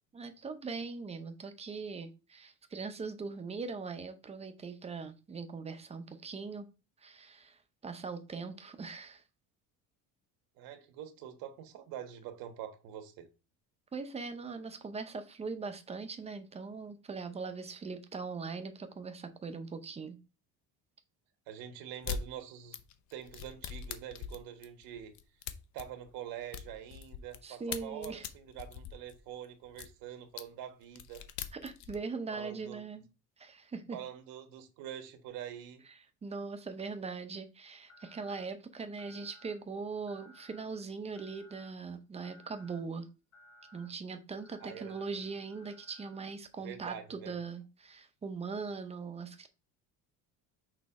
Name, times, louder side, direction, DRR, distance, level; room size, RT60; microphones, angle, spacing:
voice 1, 0.1-6.7 7.0-9.2 13.9-20.2 27.4-28.3 31.5-33.1 33.4-34.0 36.2-43.1 43.7-49.5, right 4 dB, 20° right, 0.7 m, -41 dB
voice 2, 10.6-13.3 21.5-22.8 23.1-25.1 25.7-31.2 32.3-32.8 33.9-35.8 44.6-44.9 46.6-47.3, right 10 dB, 80° right, 1.3 m, -45 dB
sound 1, 22.0-22.2 22.7-27.4 27.7-29.9 30.4-30.5 30.8-32.0, left 8 dB, 55° left, 0.7 m, -41 dB
sound 2, 37.9-38.5 39.0-39.5 40.1-40.6 41.2-41.7 42.2-42.8 43.3-43.9 44.4-46.3, left 1 dB, 35° left, 1.7 m, -59 dB
6.3 x 3.2 x 4.8 m
cardioid pair, 155°, 35 cm